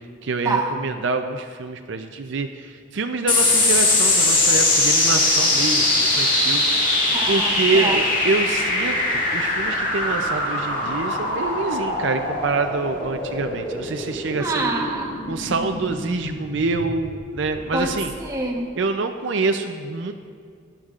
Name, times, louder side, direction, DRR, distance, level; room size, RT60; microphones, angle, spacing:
voice 1, 0.2-6.9 7.3-14.7 15.3-18.1 18.8-20.1, right 3 dB, 70° right, 6 dB, 0.5 m, -26 dB
sound 1, 3.3-18.1, left 2 dB, 45° left, 2.1 m, -22 dB
voice 2, 7.1-8.0 14.4-15.1 17.7-17.9 18.2-18.8, right 2 dB, 15° right, -1 dB, 1.1 m, -26 dB
16.5 x 11.0 x 2.5 m, 2.1 s
head